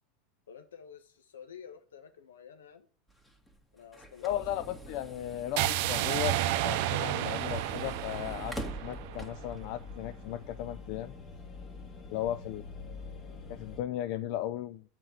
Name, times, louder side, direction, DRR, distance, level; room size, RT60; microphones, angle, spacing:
voice 1, 0.5-2.9 3.7-4.6 12.0-12.3, left 7 dB, 80° left, 8 dB, 1.2 m, -51 dB
sound 1, 3.1-9.7, right 1 dB, 10° left, 2.0 m, -46 dB
voice 2, 4.2-6.4 6.6-8.5 8.8-11.1 12.1-12.6 13.5-14.8, left 12 dB, 60° left, 11 dB, 0.5 m, -36 dB
sound 2, 5.6-9.6, right 13 dB, 65° right, 0.6 m, -31 dB
sound 3, 7.3-13.8, left 4 dB, 35° left, 2.4 m, -46 dB
7.8 x 4.5 x 6.9 m, 0.39 s
hypercardioid pair, 85°, 0 cm